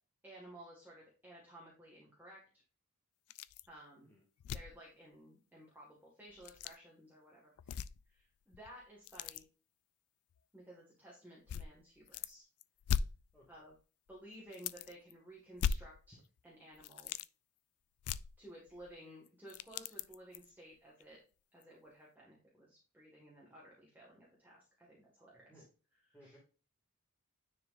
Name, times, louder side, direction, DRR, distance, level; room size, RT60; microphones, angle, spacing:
voice 1, 0.2-2.4 3.7-4.1 4.5-7.8 8.1-9.5 10.5-12.5 13.5-13.7 14.1-17.2 18.4-21.2 21.5-25.5 26.2-26.4, right 1 dB, 10° right, -5 dB, 1.7 m, -56 dB
sound 1, 3.3-3.7 4.0-4.1 4.4-4.8 6.3-6.8 7.6-8.2 8.5-9.4 10.3-10.4 11.5-12.3 12.6-13.8 14.1-14.2 14.5-15.1 15.6-16.4 16.7-17.3 18.0-18.9 19.3-20.5 21.0-21.1 21.6-21.7, left 7 dB, 80° left, 0.3 m, -39 dB
voice 2, 13.3-13.6 25.5-25.7 26.1-26.4, equal, 10° left, -7 dB, 2.2 m, -61 dB
9.6 x 4.8 x 2.6 m, 0.34 s
head